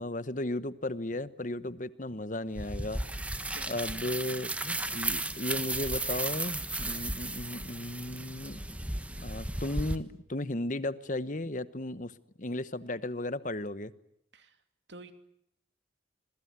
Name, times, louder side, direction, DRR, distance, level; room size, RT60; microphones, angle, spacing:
voice 1, 0.0-3.0 3.7-8.8 9.1-13.9, left 1 dB, 40° left, 15 dB, 1.1 m, -35 dB
sound 1, 2.6-10.0, right 2 dB, 5° right, 1.2 m, -35 dB
voice 2, 3.5-3.8 14.3-14.6 14.9-15.1, right 3 dB, 65° right, 8 dB, 2.8 m, -49 dB
27.0 x 22.0 x 9.6 m, 0.73 s
head